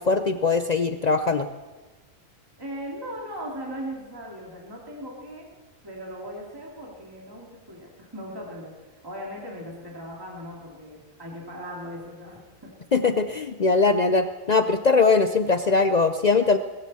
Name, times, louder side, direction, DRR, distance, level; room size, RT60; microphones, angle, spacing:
voice 1, 0.0-1.5 12.9-16.6, left 4 dB, 55° left, 9 dB, 0.5 m, -21 dB
voice 2, 2.6-5.5 5.8-12.7, equal, 15° right, -3 dB, 2.5 m, -38 dB
20.5 x 14.5 x 4.2 m, 1.3 s
omnidirectional pair, 1.4 m